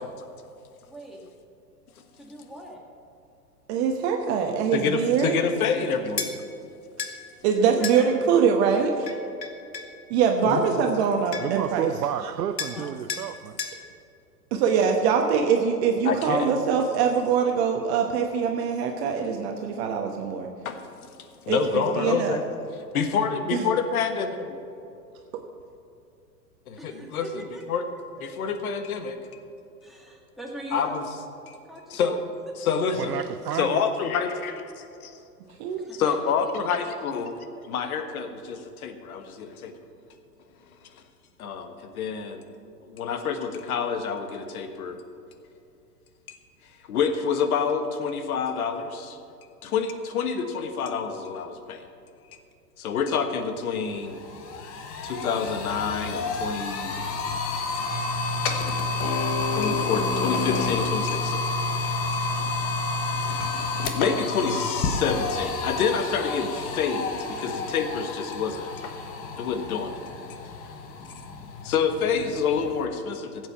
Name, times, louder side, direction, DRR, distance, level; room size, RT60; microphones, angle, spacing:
voice 1, 0.8-1.3 2.1-2.8 7.6-8.3 8.7-9.2 12.6-13.0 21.6-22.1 26.8-27.6 28.4-28.5 29.8-31.0 31.7-32.0 35.8-36.1, right 1 dB, ahead, 2.1 m, -41 dB
voice 2, 3.7-5.4 7.4-9.1 10.1-11.9 14.5-20.5 21.5-22.4 23.5-23.6 35.6-35.8, right 6 dB, 40° right, 1.2 m, -23 dB
voice 3, 4.7-6.3 10.4-10.6 16.0-16.5 20.6-20.8 21.4-22.4 22.9-24.6 26.7-27.8 28.2-29.2 30.7-31.1 31.5-31.6 31.9-32.2 32.5-33.2 33.5-35.1 35.9-37.4 37.6-39.7 41.4-42.4 42.9-45.0 46.9-49.2 49.6-51.8 52.8-54.2 55.0-56.9 59.5-61.5 62.1-62.2 63.9-68.8 69.4-70.0 71.6-73.5, left 6 dB, 60° left, 1.5 m, -27 dB
sound 1, 6.2-6.3 7.0-7.2 7.8-8.0 9.1-9.9 11.0-11.1 11.3-11.7 12.6-12.8 13.1-13.3 13.6-13.8, left 6 dB, 90° left, 1.5 m, -32 dB
voice 4, 11.4-13.6 33.0-33.8, right 9 dB, 75° right, 0.7 m, -30 dB
sound 2, 53.4-53.5 53.8-72.9, left 3 dB, 30° left, 1.3 m, -29 dB
15.0 x 8.1 x 5.7 m
hypercardioid pair, 115°, 48 cm